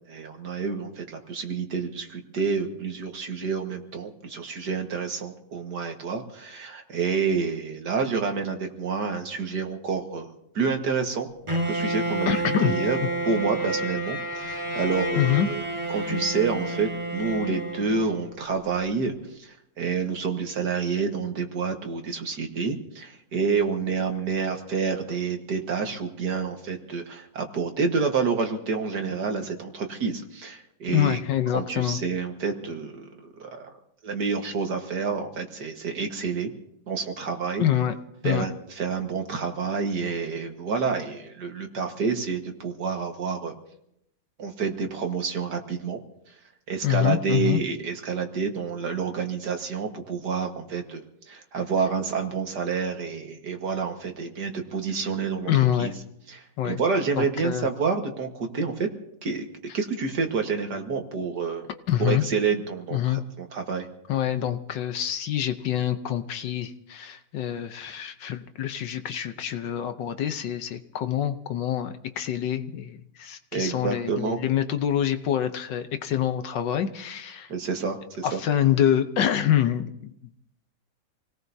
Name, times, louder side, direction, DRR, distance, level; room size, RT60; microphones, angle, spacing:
voice 1, 0.1-11.3 11.7-13.0 13.3-15.6 15.9-31.2 31.5-33.7 34.0-36.5 36.9-37.7 38.2-43.5 44.4-46.0 46.3-46.4 46.7-55.5 55.8-55.9 56.3-58.9 59.2-59.5 59.7-61.7 62.0-63.9 73.5-74.4 77.5-78.4, right 5 dB, 55° right, 4 dB, 2.0 m, -28 dB
Bowed string instrument, 11.5-18.4, right 1 dB, 15° right, 1.6 m, -30 dB
voice 2, 12.3-12.8 15.2-15.5 30.9-32.0 37.6-37.9 38.2-38.4 46.8-47.6 55.5-55.9 56.6-56.8 57.2-57.7 61.9-62.2 62.9-63.2 64.1-77.5 78.2-80.3, left 10 dB, 70° left, 9 dB, 1.4 m, -26 dB
27.5 x 18.0 x 2.7 m, 0.77 s
omnidirectional pair, 2.2 m